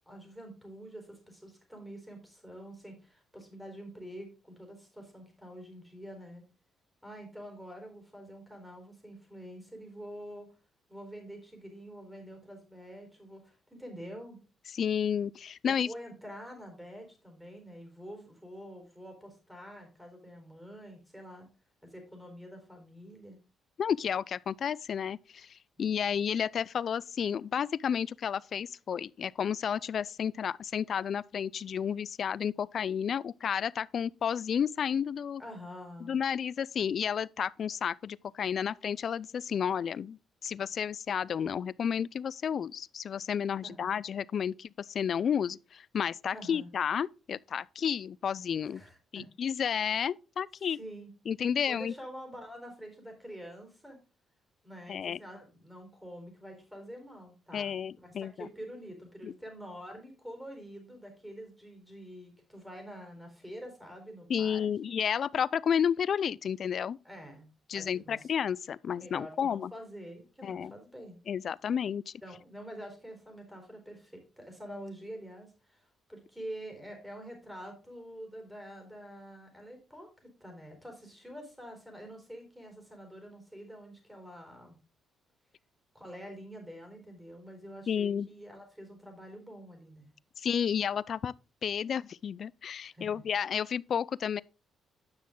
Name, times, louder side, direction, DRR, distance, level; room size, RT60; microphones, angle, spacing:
voice 1, 0.1-6.4 7.0-10.5 10.9-14.4 15.6-21.5 21.8-23.4 25.8-25.9 35.4-36.1 43.6-43.9 46.3-46.7 48.7-49.2 50.7-51.1 51.7-54.0 54.6-64.7 67.0-67.5 67.7-68.3 69.0-71.2 72.2-84.8 85.9-90.1 92.8-93.2, equal, 5° right, 4.0 m, -47 dB
voice 2, 14.7-15.9 23.8-35.4 36.0-48.8 49.1-50.8 51.3-51.9 54.9-55.2 57.5-58.5 59.2-59.3 64.3-67.0 67.7-69.7 70.4-70.7 71.3-72.1 87.9-88.3 90.4-91.3 91.6-94.4, left 8 dB, 55° left, 0.3 m, -31 dB
9.6 x 6.2 x 3.7 m
cardioid pair, 90°, 0 cm